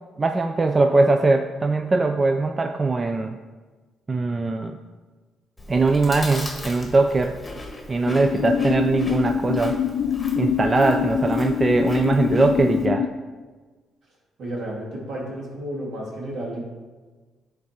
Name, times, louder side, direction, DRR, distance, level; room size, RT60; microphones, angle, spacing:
voice 1, 0.2-3.4 4.1-4.8 5.7-7.4 7.9-9.8 10.4-13.1, right 3 dB, 30° right, 5 dB, 0.3 m, -21 dB
Chewing mastication, 5.6-12.9, left 2 dB, 20° left, 1.1 m, -39 dB
sound 1, 8.1-13.1, left 8 dB, 65° left, 0.4 m, -24 dB
voice 2, 14.4-16.6, right 1 dB, 65° right, -3 dB, 2.1 m, -32 dB
9.9 x 3.3 x 4.3 m, 1.4 s
cardioid pair, 90°, 0 cm